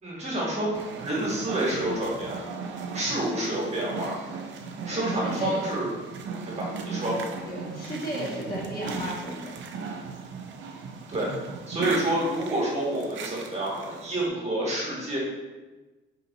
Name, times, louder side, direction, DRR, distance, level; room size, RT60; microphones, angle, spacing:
voice 1, 0.0-0.7 1.0-2.4 2.9-4.2 4.9-5.9 6.5-7.2 11.1-11.3 11.7-15.2, right 1 dB, 35° right, -4 dB, 1.0 m, -28 dB
sound 1, 0.7-14.3, right 5 dB, 70° right, 0.4 m, -37 dB
voice 2, 4.9-5.6 7.4-9.6, equal, 50° left, -6 dB, 1.2 m, -34 dB
3.1 x 2.6 x 2.6 m, 1.2 s
cardioid pair, 90°, 20 cm